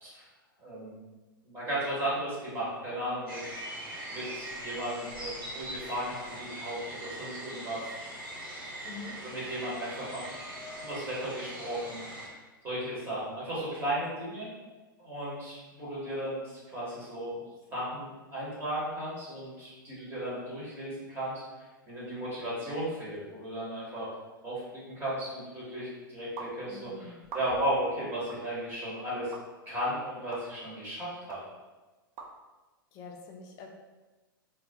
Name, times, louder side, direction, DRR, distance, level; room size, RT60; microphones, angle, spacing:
voice 1, 0.6-1.0 1.4-3.4 4.1-7.8 9.2-10.3 10.8-12.4 12.6-14.5 15.0-17.4 17.7-21.4 21.9-24.1 24.4-29.3 29.7-31.4, right 1 dB, 20° right, -8 dB, 1.0 m, -35 dB
sound 1, 3.3-12.3, right 1 dB, 80° right, 1.0 m, -41 dB
voice 2, 8.8-9.1 26.7-27.2 32.9-33.7, left 4 dB, 30° left, 1 dB, 0.4 m, -45 dB
sound 2, 26.4-26.5 27.2-27.7 28.3-28.4 29.3-29.4 30.3-30.4 31.3-31.4 32.2-32.3, right 4 dB, 35° right, 0.4 m, -42 dB
2.2 x 2.1 x 2.7 m, 1.2 s
figure-of-eight pair, 100°, 12 cm